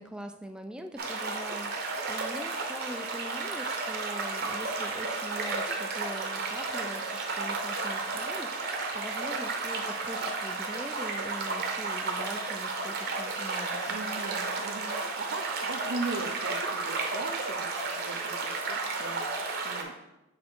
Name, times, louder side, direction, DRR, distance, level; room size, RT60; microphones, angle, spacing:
voice 1, 0.0-14.0, right 1 dB, 5° right, 6 dB, 0.3 m, -43 dB
sound 1, 1.0-19.8, right 3 dB, 55° right, 0.9 m, -33 dB
voice 2, 13.9-19.2 19.6-19.9, right 3 dB, 85° right, 5 dB, 0.7 m, -39 dB
6.3 x 3.6 x 4.5 m, 0.91 s
head